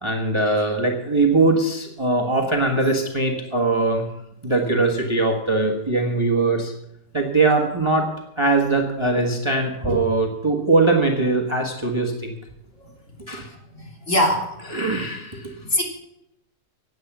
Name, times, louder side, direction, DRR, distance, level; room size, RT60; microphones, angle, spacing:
voice 1, 0.0-4.0 4.4-6.7 7.1-8.1 8.4-12.3 13.3-13.5 14.7-15.5, right 3 dB, 20° right, 2 dB, 1.4 m, -21 dB
voice 2, 13.7-14.5 15.6-15.8, left 1 dB, 45° left, 0 dB, 3.3 m, -22 dB
16.0 x 9.7 x 6.1 m, 0.84 s
omnidirectional pair, 1.8 m